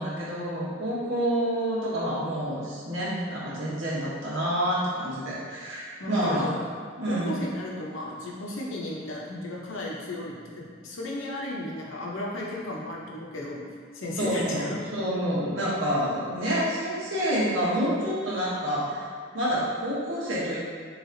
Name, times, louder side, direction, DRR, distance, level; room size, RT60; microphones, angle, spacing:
voice 1, 0.0-6.6 7.0-7.4 14.2-14.7 14.9-19.1 19.3-20.6, equal, 80° right, -8 dB, 1.3 m, -28 dB
voice 2, 6.0-6.6 7.1-13.6 13.9-14.8, left 1 dB, 90° left, -3 dB, 0.8 m, -34 dB
3.4 x 3.0 x 3.8 m, 2.1 s
head